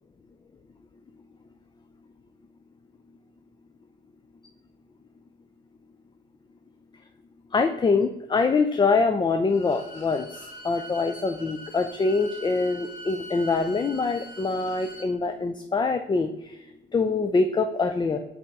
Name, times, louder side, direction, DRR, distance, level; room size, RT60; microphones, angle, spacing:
voice 1, 7.5-10.3 10.6-16.6 16.9-18.2, left 4 dB, 25° left, 7 dB, 0.4 m, -24 dB
Bowed string instrument, 9.4-15.1, right 1 dB, 80° left, 1.5 m, -43 dB
5.5 x 4.1 x 4.8 m, 0.99 s
cardioid pair, 90°, 20 cm